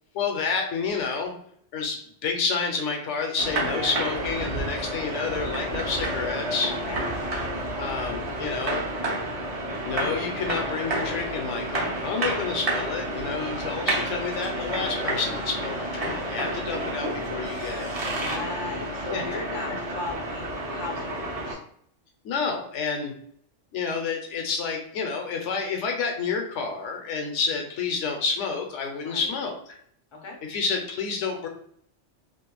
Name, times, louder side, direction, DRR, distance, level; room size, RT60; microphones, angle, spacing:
voice 1, 0.1-1.3 1.7-6.7 7.8-8.8 9.8-18.0 19.1-19.2 22.2-23.1 23.7-29.8 30.5-31.5, left 5 dB, 80° left, 3 dB, 0.9 m, -29 dB
sound 1, 3.4-21.5, right 1 dB, 40° right, 0.5 m, -30 dB
voice 2, 6.7-7.0 13.4-14.1 18.2-21.6 29.0-29.3 30.1-30.4, left 3 dB, 45° left, 0 dB, 0.4 m, -37 dB
2.4 x 2.1 x 2.9 m, 0.65 s
omnidirectional pair, 1.2 m